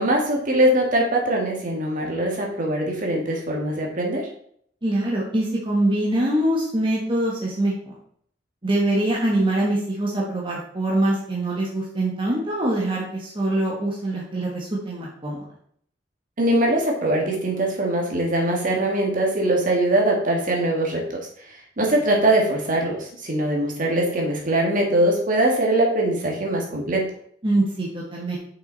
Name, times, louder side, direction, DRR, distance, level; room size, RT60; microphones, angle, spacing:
voice 1, 0.0-4.3 16.4-21.2 21.8-27.1, right 1 dB, 50° right, -1 dB, 1.9 m, -22 dB
voice 2, 4.8-7.9 8.6-15.4 21.8-21.9 27.4-28.4, right 1 dB, 30° right, -5 dB, 1.4 m, -24 dB
6.3 x 5.9 x 4.0 m, 0.63 s
head